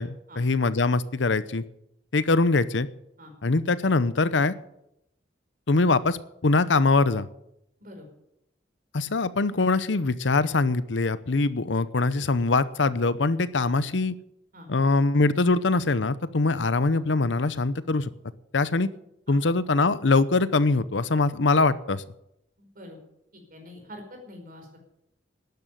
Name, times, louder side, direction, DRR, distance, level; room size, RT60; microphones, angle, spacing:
voice 1, 0.0-1.6 2.1-2.9 3.4-4.5 5.7-7.3 8.9-14.1 14.7-18.1 18.5-18.9 19.3-22.0, left 3 dB, 80° left, 16 dB, 0.8 m, -23 dB
voice 2, 22.6-23.0 23.3-24.8, left 1 dB, 50° right, 3 dB, 5.1 m, -45 dB
12.5 x 10.5 x 9.3 m, 0.81 s
head